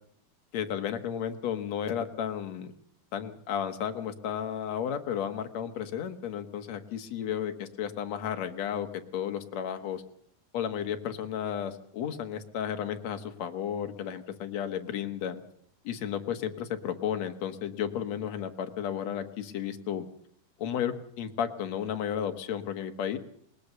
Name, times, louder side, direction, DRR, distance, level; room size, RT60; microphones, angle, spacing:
voice 1, 0.5-2.7 3.1-10.0 10.5-15.4 15.8-20.1 20.6-23.2, left 9 dB, 55° left, 7 dB, 2.2 m, -33 dB
20.0 x 20.0 x 6.8 m, 0.66 s
omnidirectional pair, 4.4 m